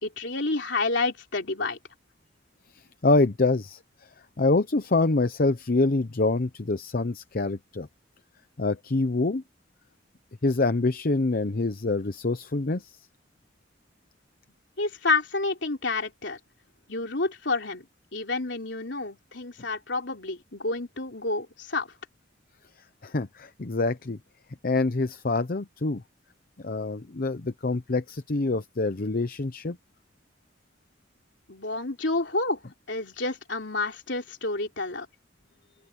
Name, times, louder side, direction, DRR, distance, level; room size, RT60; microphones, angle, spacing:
voice 1, 0.0-1.8 14.8-16.4 16.9-17.9 18.1-21.9 31.5-32.6 32.9-35.1, left 3 dB, 65° left, 3.9 m, -29 dB
voice 2, 2.7-3.8 4.4-7.9 8.6-9.4 10.4-12.9 23.0-24.2 24.6-26.0 26.6-29.8, left 3 dB, 50° left, 0.8 m, -25 dB
open air
head